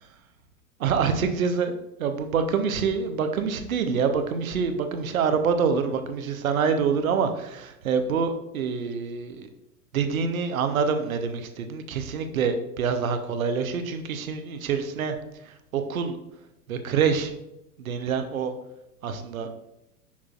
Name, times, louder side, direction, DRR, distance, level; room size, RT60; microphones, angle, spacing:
voice 1, 0.8-1.7 2.0-9.5 9.9-15.2 15.7-16.2 16.7-17.3 17.8-18.5 19.0-19.5, right 6 dB, 60° right, 8 dB, 0.9 m, -26 dB
7.2 x 6.1 x 2.4 m, 0.85 s
figure-of-eight pair, 100°, 47 cm